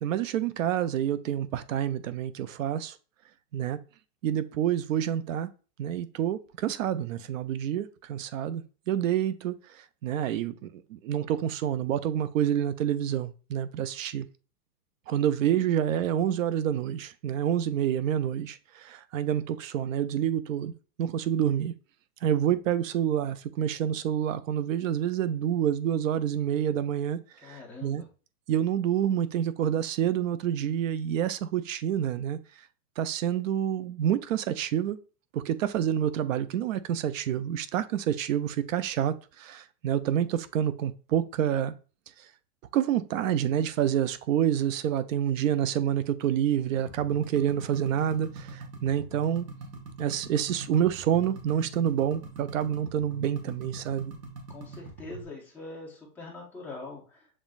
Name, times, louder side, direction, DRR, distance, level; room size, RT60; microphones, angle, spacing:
voice 1, 0.0-3.0 3.5-3.8 4.2-5.5 5.8-14.3 15.1-20.7 21.0-21.7 22.2-28.0 28.5-32.4 33.0-35.0 35.3-41.7 42.7-49.5 50.0-54.1, right 10 dB, 55° right, 0.5 m, -28 dB
voice 2, 27.4-28.0 45.4-45.5 54.5-57.3, left 3 dB, 5° left, 1.0 m, -43 dB
sound 1, 46.7-55.2, right 3 dB, 85° right, 1.7 m, -43 dB
7.2 x 3.0 x 2.4 m
hypercardioid pair, 155°, 47 cm